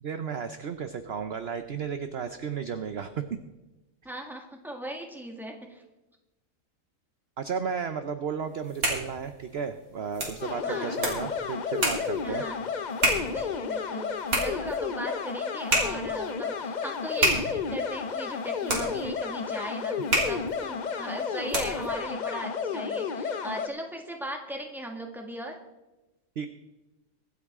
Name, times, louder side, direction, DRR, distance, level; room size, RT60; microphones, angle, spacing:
voice 1, 0.0-3.2 7.4-12.4 26.4-26.5, right 6 dB, 55° right, 9 dB, 0.9 m, -33 dB
voice 2, 4.0-5.8 10.6-11.0 12.2-12.6 13.2-14.1 14.3-25.6, right 1 dB, ahead, 2 dB, 1.8 m, -38 dB
sound 1, 8.5-22.0, right 1 dB, 70° right, 3.8 m, -31 dB
sound 2, 10.4-23.7, left 6 dB, 45° left, 0.6 m, -32 dB
24.0 x 8.7 x 3.7 m, 1.0 s
omnidirectional pair, 1.6 m